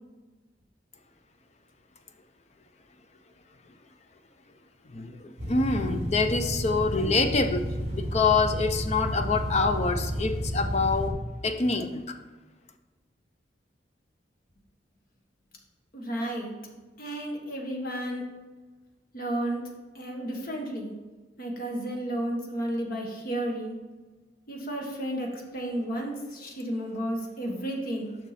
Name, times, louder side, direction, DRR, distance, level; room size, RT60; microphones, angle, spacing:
voice 1, 4.9-11.2 11.4-12.0, left 4 dB, 40° left, 7 dB, 0.6 m, -26 dB
sound 1, 5.4-11.1, equal, 35° right, 2.0 m, -31 dB
voice 2, 15.9-16.5 17.0-18.2 19.1-19.6 19.9-20.9 21.4-23.8 24.5-28.2, right 1 dB, 55° left, 0 dB, 1.5 m, -32 dB
7.1 x 5.9 x 4.2 m, 1.3 s
head